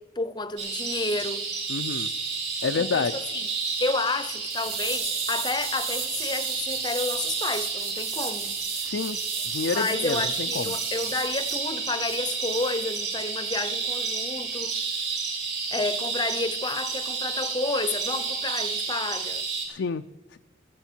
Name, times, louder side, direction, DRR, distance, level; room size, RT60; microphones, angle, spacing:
voice 1, 0.0-1.5 2.7-3.5 3.8-8.6 9.7-14.8 15.7-19.4, left 3 dB, 25° left, 0.7 m, -30 dB
sound 1, 0.6-19.7, right 5 dB, 75° right, 6.3 m, -31 dB
voice 2, 1.7-2.1 2.6-3.1 8.8-9.2 9.4-10.7 19.7-20.0 20.3-20.4, left 5 dB, 80° left, 0.5 m, -29 dB
sound 2, 4.5-11.6 12.0-12.2, right 6 dB, 35° right, 1.8 m, -36 dB
15.5 x 15.0 x 4.5 m
head